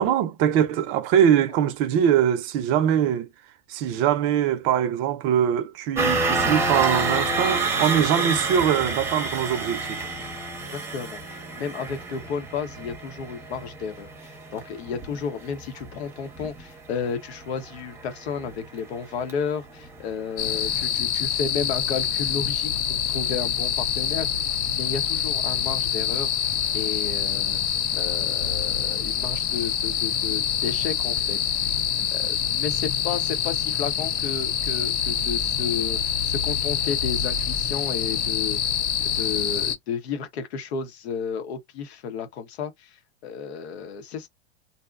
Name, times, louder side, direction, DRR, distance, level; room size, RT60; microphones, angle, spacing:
voice 1, 0.0-3.3 3.7-10.0, right 9 dB, 40° right, 0.5 m, -22 dB
sound 1, 6.0-20.0 20.3-20.6 20.9-21.0, right 3 dB, 10° right, 0.8 m, -29 dB
voice 2, 10.9-22.7 23.1-24.3 24.8-27.6 27.9-31.8 32.1-38.6 39.0-44.3, left 6 dB, 75° left, 0.9 m, -32 dB
sound 2, 20.4-39.7, left 8 dB, 30° left, 0.4 m, -26 dB
2.6 x 2.1 x 2.4 m
hypercardioid pair, 120°, 32 cm